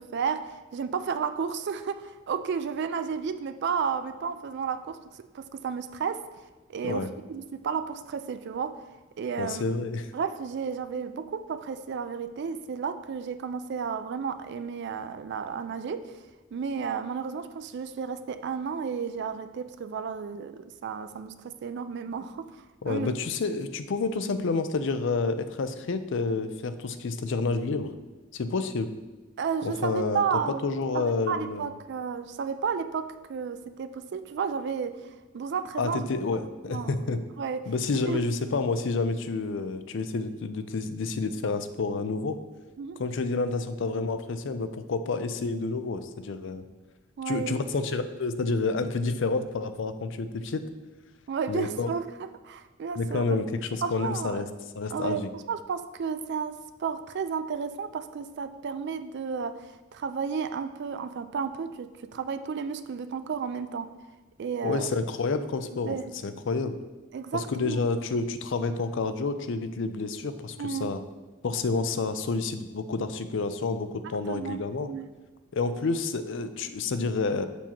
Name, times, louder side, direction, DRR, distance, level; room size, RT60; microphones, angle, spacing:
voice 1, 0.0-5.0 5.3-6.3 6.7-8.8 9.2-9.6 10.1-16.1 16.5-22.5 22.8-23.2 29.4-35.0 35.3-36.1 36.7-37.0 37.4-37.7 38.1-38.2 42.8-43.0 47.2-47.6 51.3-53.4 53.8-54.4 54.9-59.6 59.9-63.9 64.4-64.9 65.9-66.2 67.1-67.9 70.6-70.9 74.0-75.1, right 6 dB, 60° right, 11 dB, 0.4 m, -32 dB
voice 2, 9.4-10.1 22.8-27.9 28.3-28.9 29.6-30.2 30.6-31.7 35.8-37.2 37.7-42.4 43.0-46.6 47.3-50.6 51.5-51.9 53.0-54.5 54.7-55.3 64.6-66.0 66.2-66.8 67.3-71.0 71.4-74.9 75.5-77.5, left 3 dB, 65° left, 10 dB, 0.5 m, -29 dB
7.2 x 7.0 x 2.9 m, 1.2 s
head